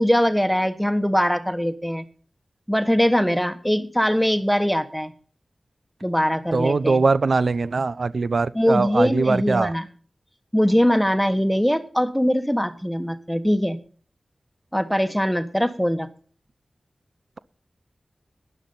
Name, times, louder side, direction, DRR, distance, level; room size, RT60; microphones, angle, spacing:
voice 1, 0.0-2.0 2.7-5.1 6.0-7.0 8.5-9.8 10.5-13.8 14.7-16.1, equal, ahead, 9 dB, 1.4 m, -21 dB
voice 2, 6.5-9.7, right 4 dB, 75° right, 15 dB, 0.6 m, -21 dB
12.5 x 11.0 x 5.6 m, 0.41 s
cardioid pair, 50°, 0 cm